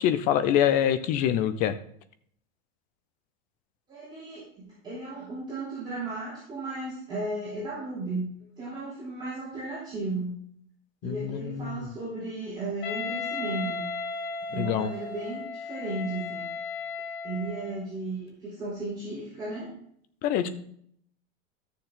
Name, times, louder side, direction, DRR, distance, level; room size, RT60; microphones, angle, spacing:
voice 1, 0.0-1.8 11.0-11.9 14.6-14.9 20.2-20.5, left 10 dB, 25° left, 12 dB, 0.5 m, -25 dB
voice 2, 3.9-8.3 8.6-10.4 11.0-13.9 14.5-16.5 17.2-19.7 20.4-20.5, right 2 dB, 15° right, -9 dB, 4.0 m, -35 dB
Wind instrument woodwind instrument, 12.8-17.8, left 4 dB, 70° left, 2.2 m, -35 dB
13.0 x 7.0 x 3.8 m, 0.65 s
supercardioid pair, 170°, 32 cm